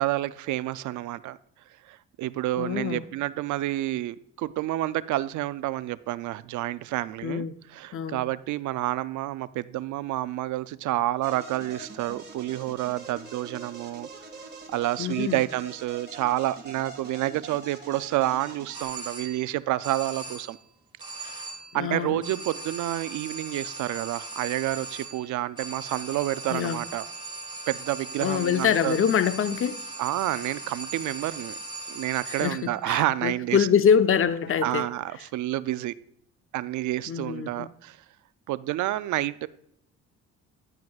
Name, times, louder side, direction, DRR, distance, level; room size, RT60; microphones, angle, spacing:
voice 1, 0.0-1.4 1.8-14.1 14.7-20.6 21.2-21.5 21.7-27.1 27.7-29.0 30.0-31.6 31.9-33.7 34.6-35.9 36.5-38.0 38.5-39.5, right 15 dB, 75° right, 0.5 m, -29 dB
voice 2, 2.6-3.0 7.2-7.5 7.9-8.2 15.0-15.4 21.7-22.2 26.5-26.8 28.2-29.8 32.4-34.9 37.1-37.7, left 8 dB, 45° left, 0.6 m, -25 dB
sound 1, 11.2-18.8, right 3 dB, 35° right, 2.0 m, -44 dB
sound 2, 18.7-19.6 19.8-20.6 21.0-21.8 22.2-32.8, right 3 dB, 15° right, 2.2 m, -39 dB
10.5 x 9.4 x 2.4 m
cardioid pair, 90°, 30 cm